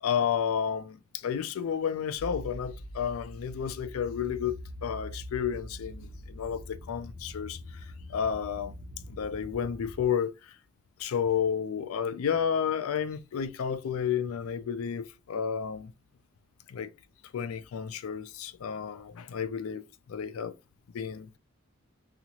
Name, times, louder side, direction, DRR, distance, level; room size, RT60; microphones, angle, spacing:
voice 1, 0.0-8.7 9.1-10.6 11.0-15.9 16.7-16.9 17.3-20.5 20.9-21.3, left 7 dB, 85° left, 0.4 m, -31 dB
sound 1, 2.2-10.1, equal, 70° right, 0.9 m, -43 dB
2.8 x 2.4 x 2.9 m
head